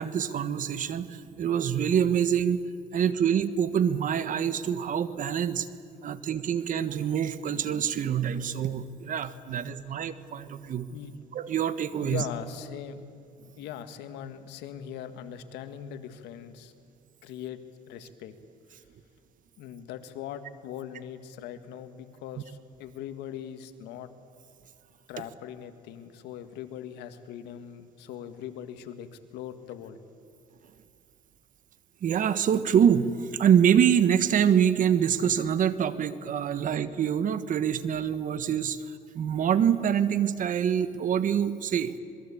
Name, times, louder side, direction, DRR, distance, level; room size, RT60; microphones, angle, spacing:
voice 1, 0.0-2.7 2.9-5.7 6.0-10.9 11.3-12.2 32.0-41.9, right 8 dB, 50° right, 13 dB, 1.3 m, -25 dB
voice 2, 12.0-13.0 13.6-16.7 17.2-17.6 17.9-18.3 19.6-24.1 25.1-30.0, left 9 dB, 90° left, 10 dB, 1.8 m, -40 dB
26.5 x 21.5 x 8.5 m, 2.3 s
cardioid pair, 110°, 17 cm